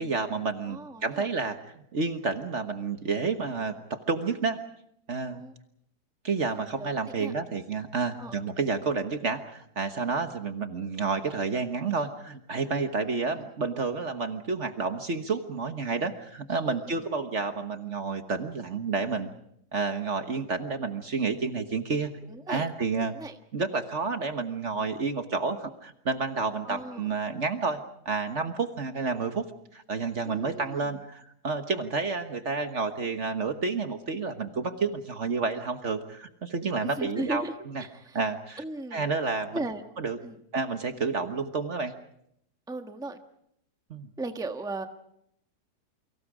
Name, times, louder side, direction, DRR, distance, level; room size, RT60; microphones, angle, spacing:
voice 1, 0.0-4.6 5.1-5.4 6.2-19.3 19.7-22.1 22.5-23.2 23.5-29.5 29.7-37.9 38.1-38.6 38.9-39.6 40.0-40.2 40.5-41.9 43.9-44.1, right 4 dB, 50° right, 7 dB, 1.5 m, -30 dB
voice 2, 0.7-1.3 5.3-5.5 6.5-6.9 7.1-7.3 8.2-8.4 13.0-13.5 16.7-17.0 22.3-22.7 23.1-23.4 26.6-27.1 30.2-31.0 36.8-38.2 38.6-39.1 39.5-39.8 40.2-40.4 42.7-43.2 44.2-44.9, right 2 dB, 5° right, 6 dB, 1.2 m, -37 dB
29.5 x 24.5 x 5.0 m, 0.73 s
omnidirectional pair, 1.7 m